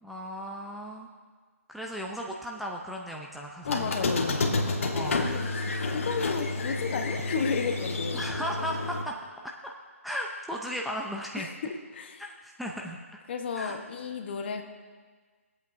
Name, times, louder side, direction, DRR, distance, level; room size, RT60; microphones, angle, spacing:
voice 1, 0.0-1.1 1.7-3.9 4.9-5.2 8.1-9.1 9.6-9.7 10.0-11.5 12.2-13.0 13.6-13.8, equal, ahead, -2 dB, 0.6 m, -36 dB
Squeak, 3.6-9.0, left 3 dB, 65° left, 1.5 m, -30 dB
voice 2, 3.7-4.4 5.2-8.3 11.4-12.3 13.3-14.6, left 5 dB, 45° left, 6 dB, 1.1 m, -33 dB
23.0 x 8.3 x 2.7 m, 1.5 s
figure-of-eight pair, 145°, 8 cm